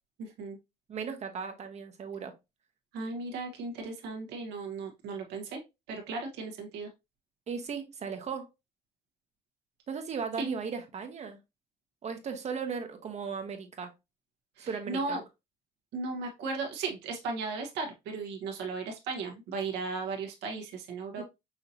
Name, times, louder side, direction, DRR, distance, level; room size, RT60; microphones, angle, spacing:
voice 1, 0.2-0.6 2.9-5.6 5.9-6.9 10.4-10.5 14.6-15.2 15.9-21.2, right 4 dB, 85° right, 1.3 m, -36 dB
voice 2, 0.9-2.3 7.5-8.5 9.9-11.4 12.0-13.9 14.6-15.2 21.2-21.3, right 6 dB, 40° right, 0.8 m, -36 dB
5.7 x 2.8 x 2.8 m
cardioid pair, 110°, 17 cm